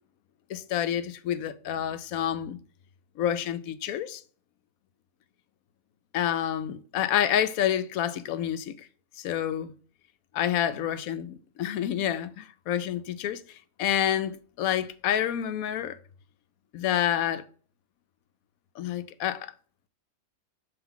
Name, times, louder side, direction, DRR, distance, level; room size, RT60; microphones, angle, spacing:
voice 1, 0.5-2.6 3.2-4.2 6.1-8.7 9.2-9.7 10.3-13.4 13.8-16.0 16.7-17.4 18.8-19.5, left 10 dB, 80° left, 1.0 m, -28 dB
5.6 x 3.6 x 5.7 m
omnidirectional pair, 1.5 m